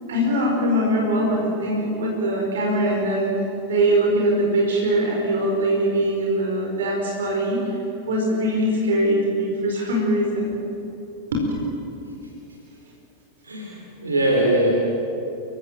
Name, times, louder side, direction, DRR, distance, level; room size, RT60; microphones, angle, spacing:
voice 1, 0.1-7.8 8.1-10.6 11.3-11.4, right 1 dB, 60° right, -1 dB, 4.7 m, -22 dB
voice 2, 13.5-14.7, right 1 dB, 75° right, -1 dB, 3.5 m, -21 dB
28.5 x 16.5 x 7.5 m, 2.8 s
figure-of-eight pair, 90°, 0 cm